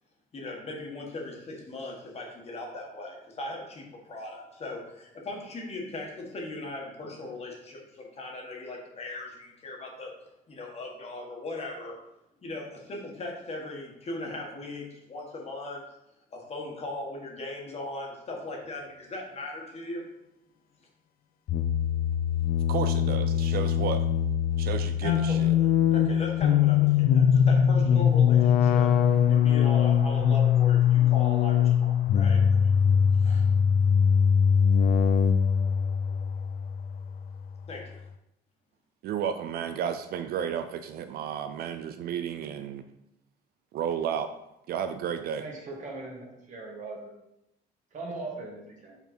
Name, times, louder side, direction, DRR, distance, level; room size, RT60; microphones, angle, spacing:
voice 1, 0.3-10.1 10.5-12.0 12.4-15.8 16.3-20.0 25.0-28.9 29.3-32.7 33.1-33.5 37.7-38.0, left 2 dB, 40° left, -1 dB, 1.7 m, -38 dB
sound 1, 21.5-37.4, left 8 dB, 60° left, 0.5 m, -22 dB
voice 2, 22.7-24.1 24.6-25.5 39.0-42.8 43.7-44.3 44.7-45.4, right 8 dB, 65° right, 9 dB, 0.4 m, -32 dB
voice 3, 45.4-47.0 47.9-49.0, right 3 dB, 45° right, -1 dB, 1.8 m, -39 dB
5.5 x 4.4 x 4.4 m, 0.84 s
cardioid pair, 110°, 17 cm